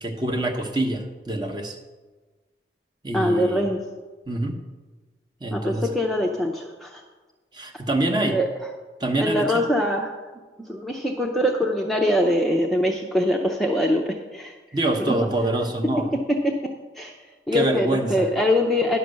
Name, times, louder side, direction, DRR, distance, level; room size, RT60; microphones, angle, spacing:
voice 1, 0.0-1.8 3.0-3.6 4.3-4.6 5.4-5.9 7.5-8.4 9.0-9.5 14.7-16.1 17.5-18.3, right 2 dB, 25° right, 4 dB, 0.9 m, -25 dB
voice 2, 3.1-3.8 5.5-7.0 8.2-8.5 9.2-10.1 10.6-14.6 15.1-15.2 15.8-17.2 17.5-19.0, left 1 dB, ahead, 0 dB, 0.6 m, -23 dB
11.0 x 5.8 x 6.4 m, 1.3 s
head